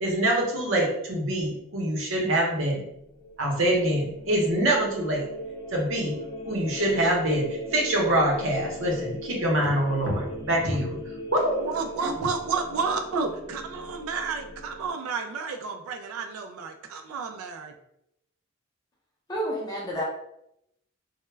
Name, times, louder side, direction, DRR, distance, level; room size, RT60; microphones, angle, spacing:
voice 1, 0.0-2.9 3.4-5.2 5.7-6.2 6.5-11.0 11.3-11.7 12.0-12.1, right 1 dB, 70° right, -1 dB, 0.7 m, -25 dB
sound 1, 3.0-14.9, equal, 65° left, 0.7 m, -39 dB
voice 2, 11.6-17.8, right 5 dB, 85° right, 6 dB, 0.3 m, -31 dB
voice 3, 19.3-20.0, equal, 20° left, -2 dB, 0.5 m, -29 dB
2.2 x 2.0 x 3.1 m, 0.80 s
head